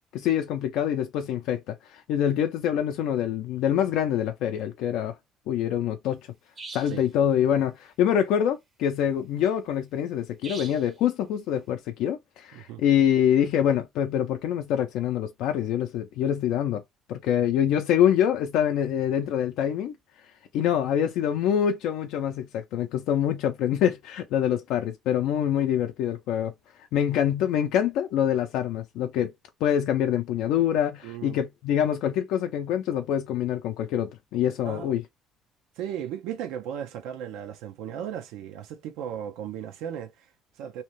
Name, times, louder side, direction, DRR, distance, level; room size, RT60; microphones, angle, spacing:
voice 1, 0.1-5.1 5.5-6.2 6.7-16.8 17.1-19.9 20.5-26.5 26.9-29.3 29.6-35.0, left 9 dB, 75° left, 0.4 m, -25 dB
sound 1, 6.6-7.0 10.4-10.9, right 4 dB, 25° right, 0.6 m, -41 dB
voice 2, 12.5-12.8 31.0-31.4 34.6-34.9 35.8-40.8, right 9 dB, 90° right, 0.5 m, -36 dB
2.8 x 2.1 x 3.0 m
cardioid pair, 145°, 0 cm